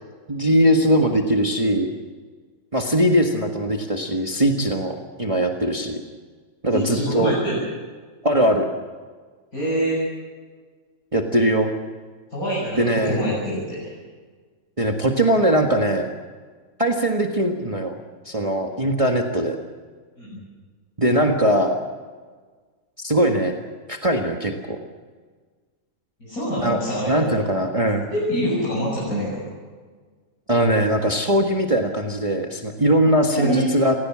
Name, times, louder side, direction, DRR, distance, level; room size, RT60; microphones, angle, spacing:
voice 1, 0.3-1.9 2.7-6.0 6.6-7.3 8.2-8.7 11.1-11.7 12.8-13.2 14.8-16.1 16.8-18.0 18.2-19.6 21.0-21.8 23.0-23.5 23.9-24.8 26.6-26.8 27.1-28.1 30.5-33.9, right 1 dB, 25° right, 2 dB, 1.7 m, -20 dB
voice 2, 6.7-7.6 9.5-10.0 12.3-13.9 18.7-18.8 20.2-20.4 26.2-27.2 28.1-29.4 33.0-33.7, equal, 80° left, -6 dB, 8.0 m, -25 dB
29.0 x 16.5 x 7.5 m, 1.5 s
omnidirectional pair, 1.5 m